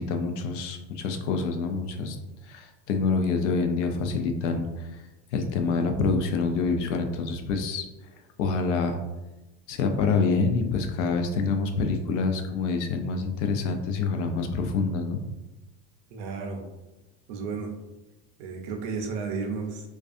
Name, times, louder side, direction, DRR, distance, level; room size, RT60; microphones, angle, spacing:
voice 1, 0.0-2.2 2.5-4.7 5.3-7.8 8.4-9.0 9.7-15.2, left 4 dB, 85° left, 5 dB, 0.5 m, -26 dB
voice 2, 16.1-16.7 17.3-17.7 18.4-19.9, right 5 dB, 45° right, 2 dB, 0.4 m, -33 dB
2.5 x 2.2 x 2.4 m, 1.0 s
supercardioid pair, 165°, 35 cm